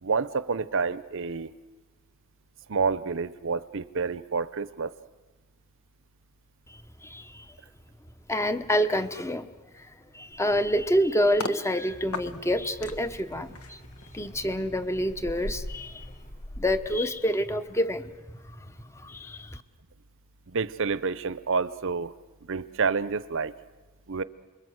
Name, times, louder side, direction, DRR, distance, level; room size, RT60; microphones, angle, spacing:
voice 1, 0.0-1.5 2.7-4.9 20.5-22.1 22.5-23.5 24.1-24.2, right 5 dB, 60° right, 15 dB, 0.8 m, -28 dB
voice 2, 6.7-7.5 8.3-9.5 9.7-9.9 10.1-13.8 14.1-16.1 16.6-18.1 18.4-18.6 18.9-19.6, equal, 15° left, 11 dB, 0.9 m, -27 dB
sound 1, 10.3-11.6 12.1-17.7 18.0-18.3, left 2 dB, 80° left, 1.3 m, -40 dB
sound 2, 11.9-16.3, equal, 35° left, 5.2 m, -50 dB
28.5 x 22.0 x 8.0 m, 1.2 s
head